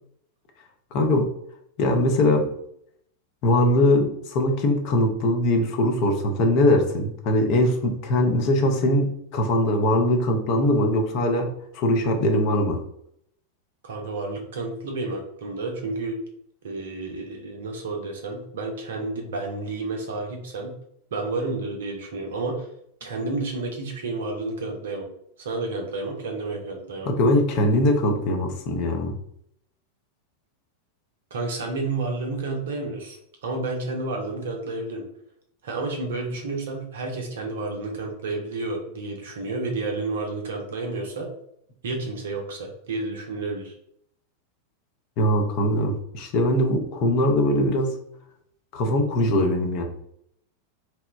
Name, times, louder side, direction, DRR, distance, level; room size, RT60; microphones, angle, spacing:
voice 1, 0.9-1.3 1.8-2.5 3.4-12.8 27.1-29.1 45.2-48.0 48.7-49.8, left 1 dB, 45° left, 3 dB, 0.5 m, -21 dB
voice 2, 13.8-16.2 16.6-20.7 21.1-22.7 23.0-25.1 25.4-27.1 31.3-35.0 35.6-41.3 41.8-43.8, right 3 dB, 60° right, 2 dB, 0.6 m, -30 dB
2.8 x 2.0 x 2.4 m, 0.71 s
figure-of-eight pair, 90°, 0 cm